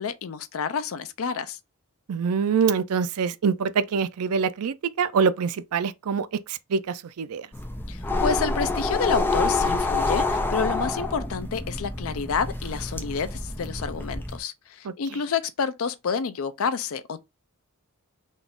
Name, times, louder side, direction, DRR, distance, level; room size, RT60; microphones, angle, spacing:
voice 1, 0.0-1.6 7.9-17.2, left 6 dB, 65° left, 0.4 m, -29 dB
voice 2, 2.1-7.5 14.8-14.9, right 6 dB, 80° right, 0.4 m, -25 dB
sound 1, 7.5-14.4, left 2 dB, 10° left, 0.5 m, -27 dB
4.0 x 2.4 x 3.5 m
head